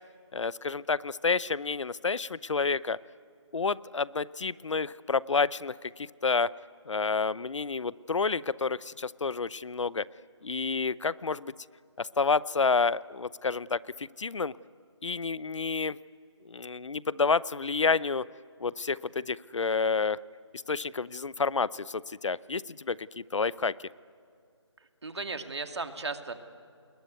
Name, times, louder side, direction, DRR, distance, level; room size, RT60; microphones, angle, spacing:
voice 1, 0.3-3.0 3.5-6.5 6.9-10.1 10.4-11.5 12.0-14.5 15.0-16.0 16.4-18.3 18.6-20.2 20.7-23.7, left 4 dB, 80° left, 20 dB, 0.7 m, -29 dB
voice 2, 25.0-26.3, right 3 dB, 65° right, 7 dB, 2.3 m, -35 dB
28.5 x 21.0 x 9.4 m, 2.3 s
figure-of-eight pair, 170°, 15 cm